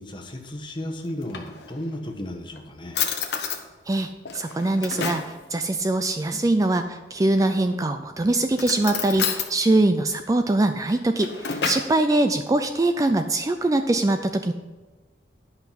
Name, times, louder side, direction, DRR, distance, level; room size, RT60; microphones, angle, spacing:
voice 1, 0.0-3.0, left 1 dB, 25° left, 3 dB, 1.0 m, -34 dB
Drawer open or close, 1.0-2.0 2.6-2.7 2.9-3.6 4.3-5.3 7.2-7.8 8.5-9.5 10.9-12.0, left 7 dB, 70° left, 1.0 m, -30 dB
voice 2, 3.9-14.5, right 2 dB, 20° right, 8 dB, 0.3 m, -23 dB
10.5 x 5.6 x 5.7 m, 1.2 s
head